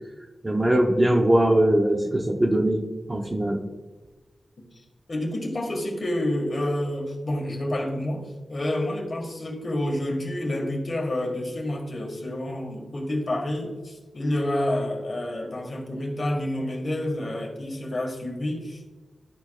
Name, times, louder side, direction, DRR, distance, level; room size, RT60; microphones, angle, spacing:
voice 1, 0.4-3.6, right 1 dB, 20° right, 3 dB, 0.7 m, -21 dB
voice 2, 5.1-18.9, left 1 dB, 50° left, 0 dB, 1.7 m, -29 dB
12.5 x 4.7 x 2.4 m, 1.2 s
wide cardioid pair, 100°, 0 cm